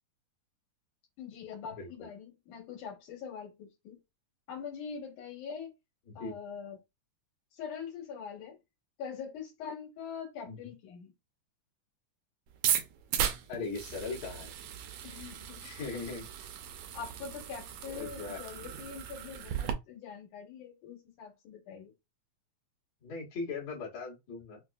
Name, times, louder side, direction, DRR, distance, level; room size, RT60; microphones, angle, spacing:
voice 1, 1.2-4.0 4.5-5.7 6.2-6.8 7.6-8.6 9.0-11.1 15.0-15.7 16.9-21.9, left 6 dB, 85° left, 2.9 m, -43 dB
voice 2, 1.7-2.1 6.1-6.4 10.5-10.7 13.5-14.5 15.6-16.5 17.9-18.4 23.0-24.6, left 4 dB, 65° left, 2.6 m, -39 dB
sound 1, 12.5-19.7, right 9 dB, 80° right, 1.8 m, -36 dB
5.7 x 2.2 x 2.4 m
omnidirectional pair, 3.4 m